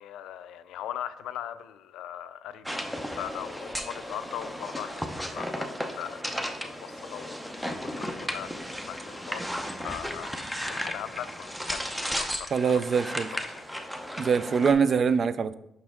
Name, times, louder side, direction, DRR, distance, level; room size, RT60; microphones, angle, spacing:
voice 1, 0.0-13.0 13.5-13.6 14.9-15.0, left 10 dB, 85° left, 0.4 m, -40 dB
sound 1, 2.7-14.7, equal, 5° right, 0.7 m, -35 dB
voice 2, 12.5-13.3 14.2-15.5, right 6 dB, 45° right, 0.3 m, -24 dB
5.9 x 5.4 x 3.6 m
cardioid pair, 90°, 0 cm